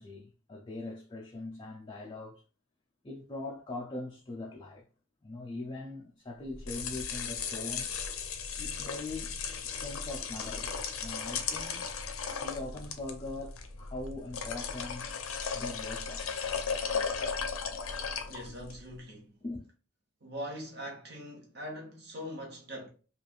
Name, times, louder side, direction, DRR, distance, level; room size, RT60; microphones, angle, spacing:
voice 1, 0.0-2.4 3.0-4.9 5.2-7.9 8.6-9.4 9.7-11.9 12.4-15.2 15.5-16.4 19.4-19.6, left 2 dB, 20° left, 0.3 m, -41 dB
sound 1, 6.5-18.8, left 6 dB, 85° left, 0.5 m, -36 dB
voice 2, 18.2-19.4 20.2-22.9, equal, 50° right, 1.0 m, -42 dB
3.2 x 2.4 x 2.3 m
head